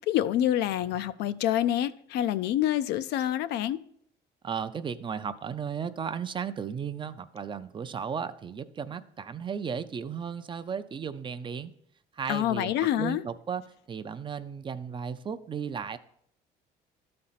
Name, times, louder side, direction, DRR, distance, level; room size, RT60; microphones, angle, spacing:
voice 1, 0.1-3.8 12.3-13.2, left 12 dB, 80° left, 0.4 m, -27 dB
voice 2, 4.4-11.7 12.1-13.6 13.9-16.0, right 7 dB, 30° right, 0.4 m, -35 dB
12.0 x 4.3 x 4.0 m
cardioid pair, 110°, 17 cm